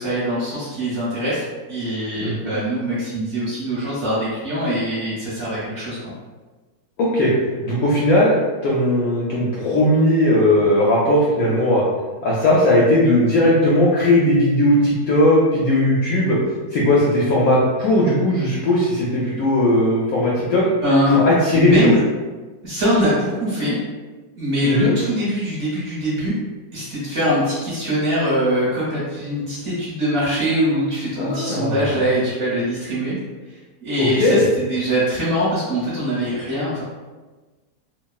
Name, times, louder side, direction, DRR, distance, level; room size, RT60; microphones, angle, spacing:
voice 1, 0.0-6.0 20.8-21.3 21.5-22.0 22.6-23.8 24.3-26.3 26.7-33.1 33.8-36.8, equal, 50° right, -9 dB, 1.0 m, -22 dB
voice 2, 7.0-7.3 7.6-8.3 8.6-11.8 12.2-16.4 16.7-20.7 21.1-21.9 24.6-24.9 31.2-32.0 34.0-34.5, left 1 dB, 70° left, -5 dB, 0.8 m, -17 dB
3.1 x 2.2 x 2.3 m, 1.3 s
omnidirectional pair, 1.9 m